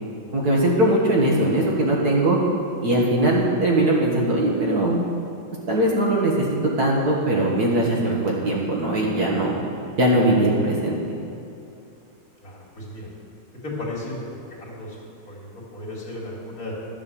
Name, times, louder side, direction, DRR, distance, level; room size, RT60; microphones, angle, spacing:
voice 1, 0.3-2.4 2.8-5.0 5.7-9.6 10.0-11.0, right 1 dB, 55° right, -3 dB, 1.9 m, -20 dB
voice 2, 12.4-13.1 13.6-14.2 14.5-15.0 15.3-16.7, left 1 dB, 45° left, -5 dB, 2.8 m, -34 dB
12.0 x 7.3 x 6.9 m, 2.6 s
omnidirectional pair, 2.1 m